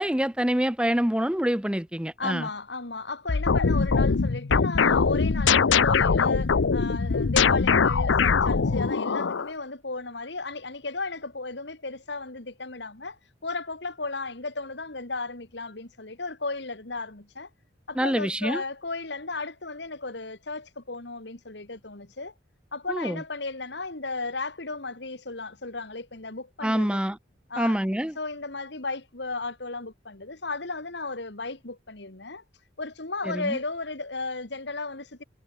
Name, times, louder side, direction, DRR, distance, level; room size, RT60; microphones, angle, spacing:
voice 1, 0.0-2.5 18.0-18.6 22.9-23.2 26.6-27.2 27.6-28.1 33.2-33.6, equal, 5° right, 0.7 m, -26 dB
voice 2, 2.2-17.5 17.9-22.3 22.7-27.0 27.5-27.8 28.2-32.4 32.8-35.2, left 3 dB, 65° left, 2.3 m, -34 dB
sound 1, 3.3-9.5, left 5 dB, 80° left, 0.6 m, -22 dB
head